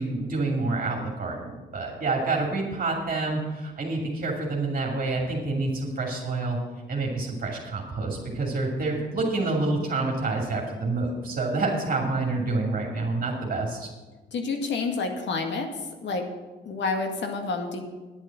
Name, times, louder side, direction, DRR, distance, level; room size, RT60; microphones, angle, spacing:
voice 1, 0.0-6.6 6.9-13.9, right 3 dB, 45° right, -1 dB, 2.6 m, -28 dB
voice 2, 14.3-15.7 16.0-16.3 16.6-17.8, left 4 dB, 65° left, 4 dB, 1.9 m, -28 dB
10.0 x 9.1 x 7.1 m, 1.2 s
cardioid pair, 90°, 20 cm